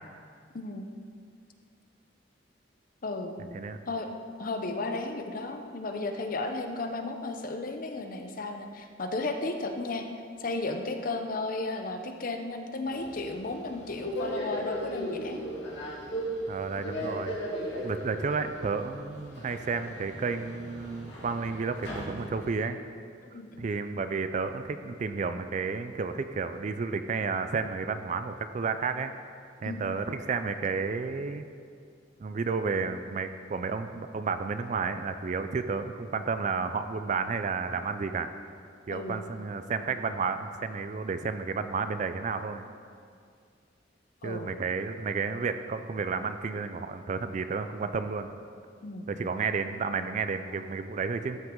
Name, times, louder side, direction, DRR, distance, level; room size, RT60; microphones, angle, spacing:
voice 1, 0.5-0.9 3.0-3.4 3.9-4.1 4.4-10.1 10.4-15.4 16.7-17.0 23.2-23.6 29.6-30.0 38.9-39.2 44.2-44.5 48.8-49.2, left 2 dB, 45° left, 5 dB, 0.6 m, -34 dB
voice 2, 3.4-3.8 16.5-17.4 17.8-22.8 23.6-29.1 29.6-31.5 32.2-38.3 38.9-42.7 44.2-48.3 49.1-51.4, right 5 dB, 40° right, 10 dB, 0.3 m, -31 dB
Subway metro underground, 12.9-22.6, equal, 65° left, 2.4 m, -37 dB
13.0 x 5.8 x 3.7 m, 2.3 s
head